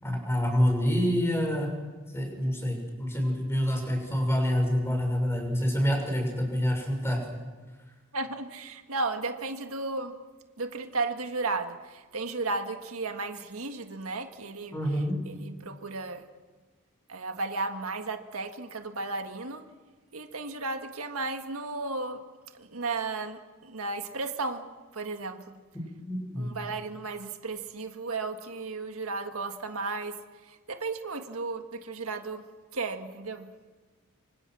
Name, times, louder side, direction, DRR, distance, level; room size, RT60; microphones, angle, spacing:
voice 1, 0.0-1.7 2.1-7.2 14.7-15.2 25.7-26.5, equal, 10° left, 2 dB, 6.3 m, -27 dB
voice 2, 8.1-10.2 10.6-16.2 17.1-19.6 20.1-22.3 22.5-24.6 24.9-25.6 26.4-32.5 32.7-33.5, right 3 dB, 85° right, 6 dB, 1.7 m, -34 dB
25.5 x 25.5 x 6.3 m, 1.3 s
head